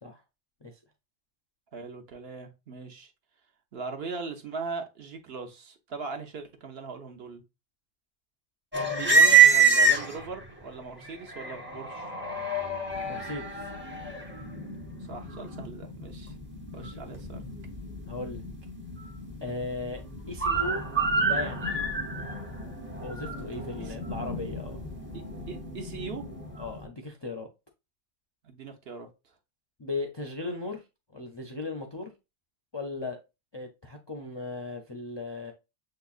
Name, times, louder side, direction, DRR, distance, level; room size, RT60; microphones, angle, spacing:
voice 1, 1.7-3.1 3.7-7.4 8.9-12.1 15.1-16.3 16.7-17.4 23.8-24.0 25.1-26.2 28.4-29.1, right 4 dB, 60° right, 1.0 m, -40 dB
sound 1, 8.7-10.5 11.0-26.9, right 4 dB, 10° right, 0.6 m, -27 dB
voice 2, 8.8-9.5 13.0-13.7 16.8-17.2 18.1-18.4 19.4-20.9 21.3-21.8 23.0-24.8 26.6-27.5 29.8-30.8 31.1-32.1 32.7-33.2 33.5-35.5, left 3 dB, 40° left, 0.4 m, -37 dB
6.5 x 2.9 x 2.4 m
omnidirectional pair, 1.2 m